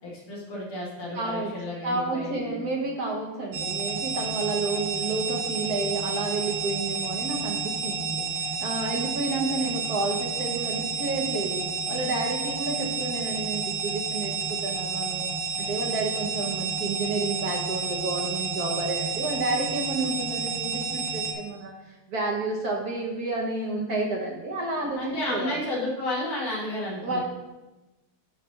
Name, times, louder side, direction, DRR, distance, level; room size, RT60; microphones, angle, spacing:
voice 1, 0.0-2.7 24.9-27.2, left 1 dB, 90° left, -6 dB, 3.0 m, -32 dB
voice 2, 1.1-1.5 1.8-15.3 15.6-25.6 27.0-27.2, right 2 dB, 55° right, -1 dB, 1.3 m, -30 dB
sound 1, 3.5-21.3, right 5 dB, 75° right, 1.8 m, -30 dB
8.6 x 3.3 x 5.6 m, 1.0 s
omnidirectional pair, 2.3 m